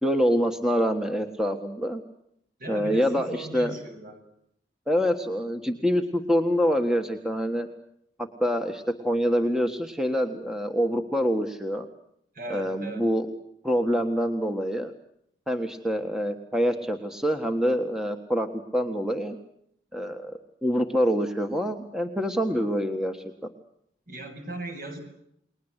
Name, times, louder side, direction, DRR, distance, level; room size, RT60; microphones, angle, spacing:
voice 1, 0.0-2.0 2.7-3.7 4.9-7.7 8.4-11.8 12.5-13.3 13.6-14.9 15.5-19.4 19.9-23.3, equal, 5° right, 5 dB, 1.5 m, -26 dB
voice 2, 2.6-4.2 12.3-13.1 24.1-25.0, right 2 dB, 50° right, 5 dB, 7.5 m, -38 dB
30.0 x 21.0 x 8.2 m, 0.74 s
head